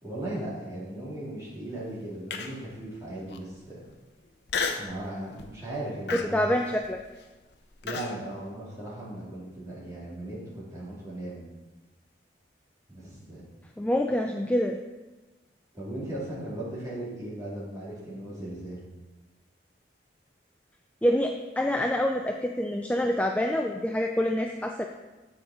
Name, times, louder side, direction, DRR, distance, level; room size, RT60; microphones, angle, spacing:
voice 1, 0.0-3.8 4.8-6.5 7.8-11.4 12.9-13.5 15.7-18.9, right 1 dB, 20° right, -9 dB, 3.2 m, -37 dB
Human voice, 2.3-2.7 3.3-3.4 4.5-5.0 5.4-5.7 6.1-8.1, left 5 dB, 65° left, 0.7 m, -32 dB
voice 2, 6.1-7.0 13.8-14.8 21.0-24.9, left 1 dB, 5° left, 3 dB, 0.3 m, -26 dB
8.2 x 6.6 x 4.4 m, 1.2 s
head